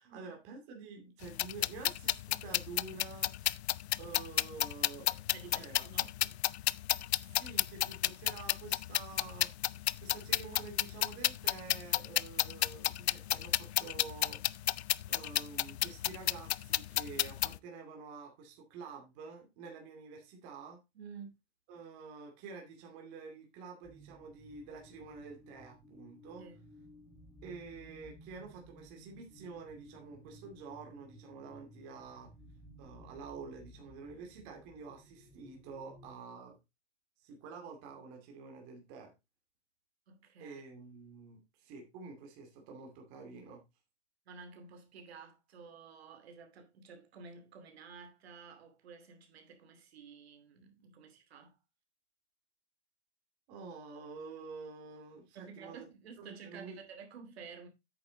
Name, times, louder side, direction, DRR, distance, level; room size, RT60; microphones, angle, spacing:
voice 1, 0.0-3.3 4.0-5.2 5.6-6.3 7.1-9.5 10.0-14.4 15.1-20.8 21.7-26.5 27.4-32.3 32.8-36.6 37.2-39.1 40.4-43.6 53.5-55.8 56.2-56.8, right 4 dB, 30° right, 2.4 m, -48 dB
sound 1, 1.2-17.6, left 14 dB, 65° left, 0.5 m, -32 dB
voice 2, 5.3-6.1 20.9-21.3 26.4-26.7 40.1-40.6 44.3-51.6 55.3-57.7, right 5 dB, 60° right, 2.7 m, -51 dB
sound 2, 23.8-36.1, equal, 5° left, 1.0 m, -57 dB
8.8 x 6.9 x 3.8 m
hypercardioid pair, 160°, 35 cm